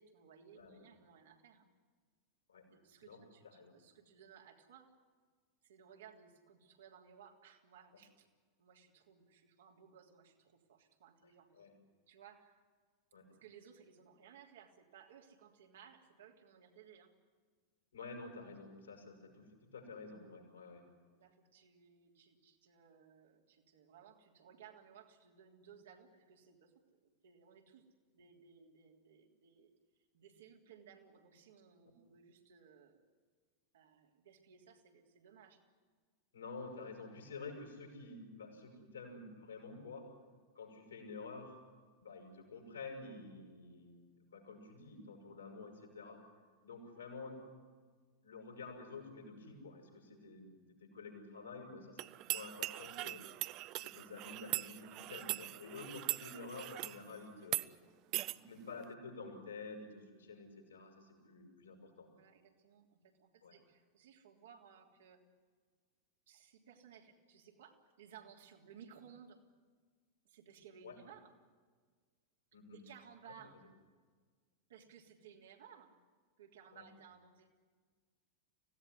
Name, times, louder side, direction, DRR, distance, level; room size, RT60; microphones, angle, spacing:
voice 1, 0.0-1.7 2.7-4.9 5.6-8.3 8.6-11.7 12.1-12.6 13.3-17.1 21.1-27.9 28.1-29.7 30.1-33.2 33.7-35.6 62.1-65.2 66.3-69.4 70.3-71.3 72.7-73.6 74.7-75.9 76.4-77.5, right 7 dB, 60° right, 1 dB, 3.3 m, -60 dB
voice 2, 0.6-0.9 2.5-2.7 3.0-3.7 11.5-11.7 13.1-13.3 17.9-20.8 36.3-40.1 40.5-41.6 42.0-46.3 46.6-47.5 48.2-53.3 53.8-57.6 58.3-62.1 63.4-63.6 70.8-71.0 72.5-72.8 73.3-73.4 76.7-76.8, left 3 dB, 70° left, 2 dB, 7.2 m, -50 dB
sound 1, 52.0-57.0 57.4-57.7 58.1-58.4, right 18 dB, 40° right, 0.6 m, -40 dB
25.0 x 17.0 x 9.7 m, 1.5 s
figure-of-eight pair, 90°, 0 cm